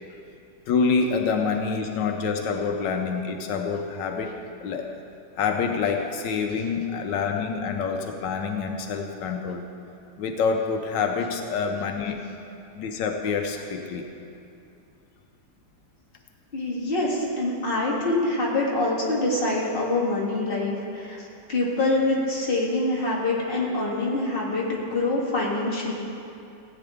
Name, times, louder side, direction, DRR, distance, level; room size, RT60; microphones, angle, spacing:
voice 1, 0.7-4.3 4.6-4.9 5.4-9.6 10.2-12.2 12.8-14.1, left 5 dB, 85° left, 4 dB, 1.4 m, -26 dB
voice 2, 16.5-25.9, left 2 dB, 30° left, -5 dB, 2.1 m, -25 dB
17.0 x 8.9 x 3.5 m, 2.7 s
omnidirectional pair, 1.9 m